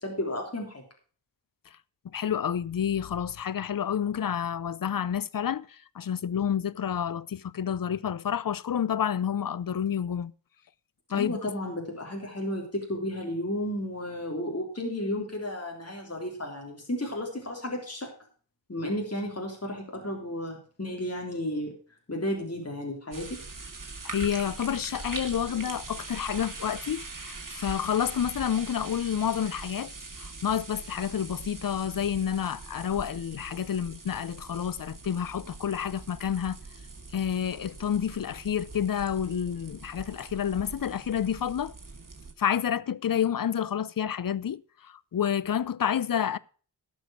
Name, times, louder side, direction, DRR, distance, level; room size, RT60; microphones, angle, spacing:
voice 1, 0.0-0.8 11.1-18.1 18.7-21.7 22.1-23.4, left 1 dB, 35° left, 3.4 m, -33 dB
voice 2, 2.1-5.7 6.0-10.3 11.1-11.4 24.0-29.9 30.2-36.6 37.1-41.7 42.4-46.4, left 9 dB, 50° left, 0.6 m, -29 dB
sound 1, 23.1-42.3, right 3 dB, 45° right, 2.4 m, -42 dB
12.5 x 6.2 x 6.0 m
cardioid pair, 40°, 44 cm